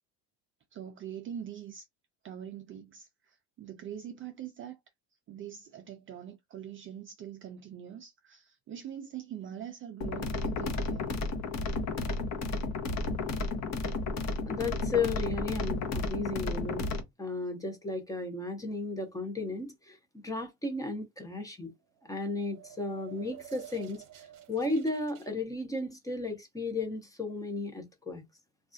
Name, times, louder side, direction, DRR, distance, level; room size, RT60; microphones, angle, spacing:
voice 1, 0.7-1.9 2.2-4.8 5.3-11.1, right 9 dB, 35° right, 0.4 m, -43 dB
sound 1, 10.0-17.0, left 3 dB, 45° left, 0.8 m, -32 dB
voice 2, 14.5-16.9 17.2-20.0 20.2-21.7 22.1-24.0 24.5-28.2, left 3 dB, 10° left, 0.6 m, -34 dB
sound 2, 22.0-25.3, right 12 dB, 50° right, 0.9 m, -50 dB
3.2 x 2.4 x 2.5 m
cardioid pair, 135°, 39 cm